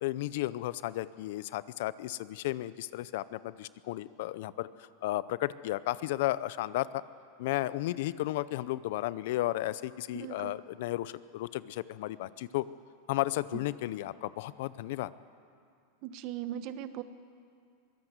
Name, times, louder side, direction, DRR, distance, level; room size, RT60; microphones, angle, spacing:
voice 1, 0.0-7.0 7.4-12.6 13.1-15.1, left 16 dB, 65° left, 17 dB, 0.6 m, -34 dB
voice 2, 10.1-10.6 13.5-13.6 16.0-17.0, right 11 dB, 50° right, 12 dB, 1.1 m, -39 dB
22.5 x 16.0 x 8.1 m, 2.4 s
supercardioid pair, 130°, 0 cm